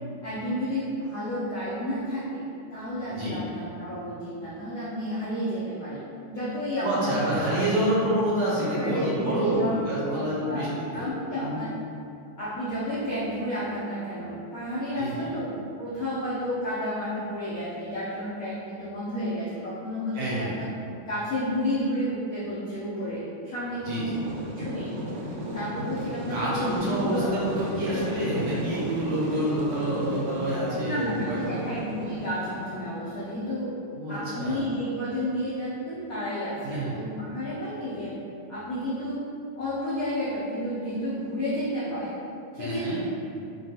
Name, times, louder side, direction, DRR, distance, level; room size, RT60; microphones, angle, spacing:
voice 1, 0.2-2.4 2.7-7.6 8.7-11.7 12.4-15.5 15.8-20.7 21.0-24.2 24.5-24.9 25.5-27.4 30.8-33.7 34.1-38.1 38.5-39.2 39.6-42.1 42.5-43.1, equal, 90° left, -10 dB, 0.7 m, -31 dB
voice 2, 3.1-3.4 6.8-11.1 11.4-11.6 14.9-15.3 20.1-20.5 23.8-24.3 26.1-31.7 33.9-34.6 36.6-37.0 42.6-43.0, right 1 dB, 65° right, -9 dB, 1.3 m, -28 dB
sound 1, 23.8-32.9, equal, 85° right, 1.5 m, -34 dB
3.4 x 2.3 x 2.7 m, 2.6 s
omnidirectional pair, 2.3 m